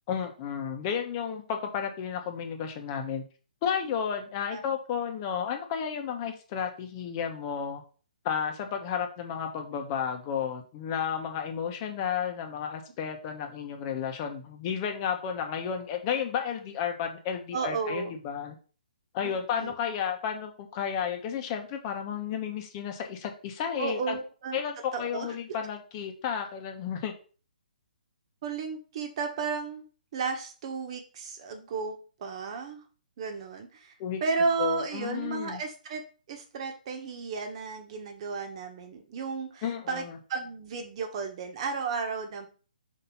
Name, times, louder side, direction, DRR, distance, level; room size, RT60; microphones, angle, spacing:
voice 1, 0.1-3.2 3.6-7.8 8.2-18.5 19.1-24.2 24.5-27.1 34.0-34.2 34.6-35.6 39.6-40.2, left 7 dB, 30° left, 4 dB, 1.2 m, -32 dB
voice 2, 17.5-18.2 19.2-19.7 23.8-24.6 24.9-25.3 28.4-29.8 30.1-32.9 33.2-33.9 34.2-36.0 36.3-40.0 40.3-42.5, right 4 dB, 40° right, 5 dB, 1.4 m, -33 dB
5.3 x 4.3 x 5.6 m, 0.37 s
hypercardioid pair, 155°, 5 cm